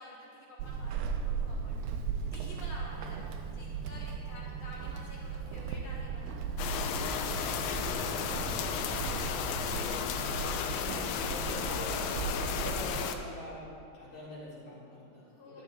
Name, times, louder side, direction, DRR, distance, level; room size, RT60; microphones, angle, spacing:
voice 1, 0.0-2.0 2.3-7.4 15.2-15.6, left 1 dB, 60° left, -3 dB, 1.3 m, -50 dB
Walk footsteps / Squeak, 0.6-13.3, right 6 dB, 85° right, 3.0 m, -37 dB
sound 1, 6.6-13.2, left 8 dB, 85° left, 3.0 m, -34 dB
voice 2, 7.9-9.0 10.0-10.7 11.2-13.6 13.9-15.6, left 1 dB, 40° left, -9 dB, 5.3 m, -45 dB
15.5 x 12.5 x 4.2 m, 2.5 s
omnidirectional pair, 5.3 m